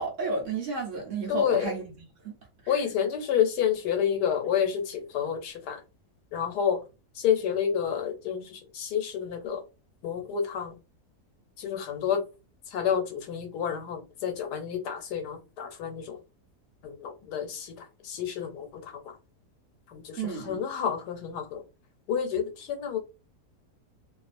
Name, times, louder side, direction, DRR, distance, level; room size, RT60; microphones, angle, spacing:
voice 1, 0.0-1.9 2.2-2.3 2.6-2.8 20.2-20.6, right 3 dB, 55° right, 1.0 m, -31 dB
voice 2, 1.3-1.7 2.7-5.8 6.3-6.8 7.2-9.6 10.0-10.7 11.6-12.2 12.7-16.2 16.8-17.7 18.0-18.7 18.9-19.0 19.9-20.2 20.4-21.6 22.1-23.0, left 8 dB, 85° left, 1.2 m, -29 dB
2.7 x 2.4 x 2.5 m
omnidirectional pair, 1.7 m